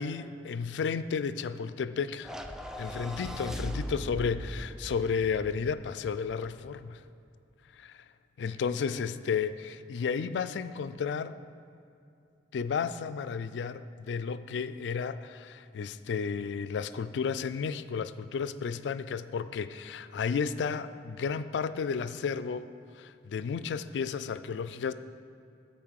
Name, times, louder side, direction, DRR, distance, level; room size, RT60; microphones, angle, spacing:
voice 1, 0.0-2.3 2.8-7.0 7.7-8.1 8.4-11.4 12.5-22.7 22.9-24.9, left 6 dB, 80° left, 13 dB, 0.3 m, -33 dB
sound 1, 2.2-6.7, equal, 5° right, 0.3 m, -39 dB
9.3 x 4.3 x 6.4 m, 2.6 s
head